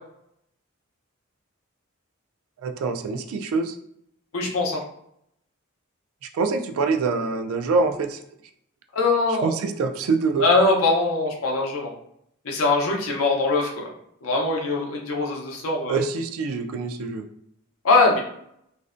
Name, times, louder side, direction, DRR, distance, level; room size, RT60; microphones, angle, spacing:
voice 1, 2.6-3.8 6.3-8.2 9.4-10.4 15.9-17.3, right 4 dB, 90° right, 7 dB, 0.3 m, -25 dB
voice 2, 4.3-4.8 8.9-9.5 10.4-11.9 12.4-13.9 14.2-16.0 17.8-18.2, left 3 dB, 90° left, 0 dB, 0.6 m, -22 dB
2.5 x 2.1 x 2.4 m, 0.72 s
head